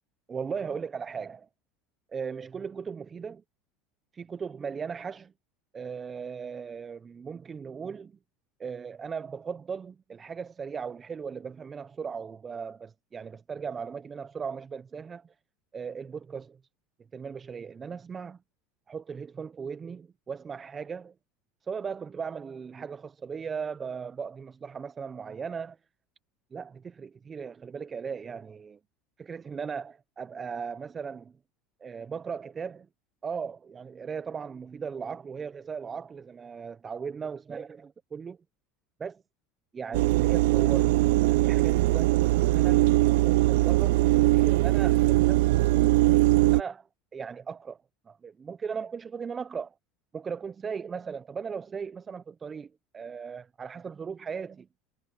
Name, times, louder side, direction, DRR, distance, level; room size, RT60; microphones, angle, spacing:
voice 1, 0.3-1.5 2.1-3.4 4.1-5.3 5.7-8.2 8.6-15.3 15.7-16.6 17.1-18.4 18.9-21.1 21.6-25.8 26.5-28.8 29.2-31.3 31.8-32.9 33.2-37.7 38.1-38.4 39.0-39.2 39.7-42.8 43.2-46.0 46.3-46.9 47.1-47.8 48.1-49.7 50.1-54.7, right 6 dB, 30° right, 0.7 m, -37 dB
sound 1, 39.9-46.6, right 19 dB, 80° right, 0.4 m, -21 dB
supercardioid pair, 95°, 0 cm